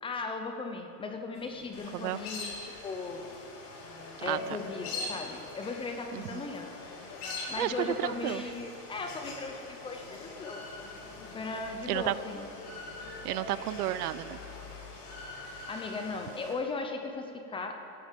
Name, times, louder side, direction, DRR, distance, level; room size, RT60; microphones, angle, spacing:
voice 1, 0.0-3.3 4.2-6.7 7.5-10.6 11.3-12.5 15.0-17.7, left 3 dB, 10° left, 5 dB, 0.6 m, -37 dB
sound 1, 1.3-16.3, left 2 dB, 90° left, 2.8 m, -49 dB
sound 2, 1.7-16.5, left 3 dB, 65° left, 3.3 m, -44 dB
voice 2, 6.1-6.5 7.6-8.4 11.9-12.1 13.2-14.4, right 14 dB, 70° right, 16 dB, 0.6 m, -32 dB
14.5 x 8.6 x 7.3 m, 2.7 s
supercardioid pair, 150°, 48 cm